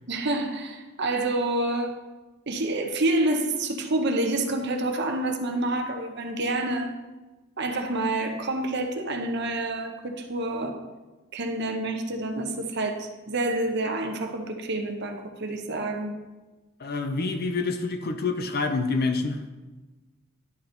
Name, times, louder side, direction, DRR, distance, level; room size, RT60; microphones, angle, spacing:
voice 1, 0.1-1.9 2.5-6.9 7.6-10.7 11.3-16.1, right 2 dB, 55° right, 5 dB, 0.8 m, -28 dB
voice 2, 16.8-19.4, left 3 dB, 50° left, 7 dB, 0.7 m, -27 dB
11.0 x 3.9 x 4.4 m, 1.2 s
head